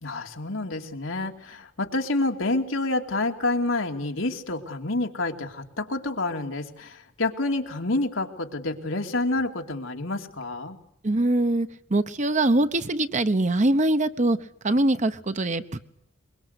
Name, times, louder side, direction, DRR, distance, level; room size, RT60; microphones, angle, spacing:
voice 1, 0.0-10.8, left 2 dB, 85° left, 3 dB, 2.5 m, -28 dB
voice 2, 11.0-14.4 14.6-15.8, right 2 dB, 40° right, 11 dB, 1.0 m, -23 dB
23.0 x 22.5 x 8.1 m, 0.78 s
head